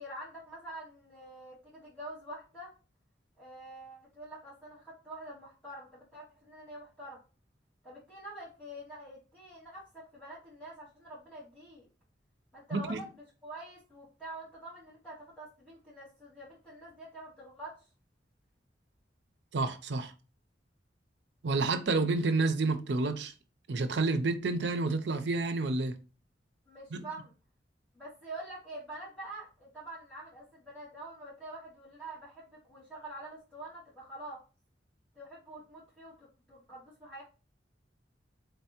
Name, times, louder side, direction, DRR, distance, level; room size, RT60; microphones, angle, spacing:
voice 1, 0.0-2.7 3.4-7.2 7.8-11.9 12.5-17.8 26.7-27.3 27.9-34.4 35.1-37.2, right 1 dB, 5° left, 2.0 m, -46 dB
voice 2, 12.7-13.0 19.5-20.1 21.4-23.3 23.7-25.9 26.9-27.0, right 3 dB, 70° right, 0.6 m, -29 dB
4.0 x 3.3 x 2.8 m
head